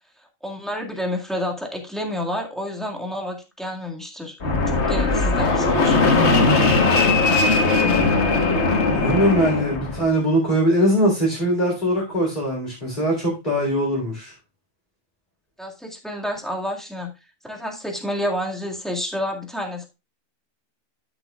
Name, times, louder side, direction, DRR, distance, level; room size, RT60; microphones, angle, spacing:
voice 1, 0.4-4.4 4.7-6.3 15.6-17.1 17.4-19.9, left 1 dB, ahead, 1.8 m, -29 dB
Fixed-wing aircraft airplane, 4.4-10.0, left 3 dB, 55° left, 1.7 m, -19 dB
voice 2, 8.9-14.3, equal, 35° left, 3.6 m, -21 dB
12.5 x 7.0 x 2.3 m
omnidirectional pair, 1.4 m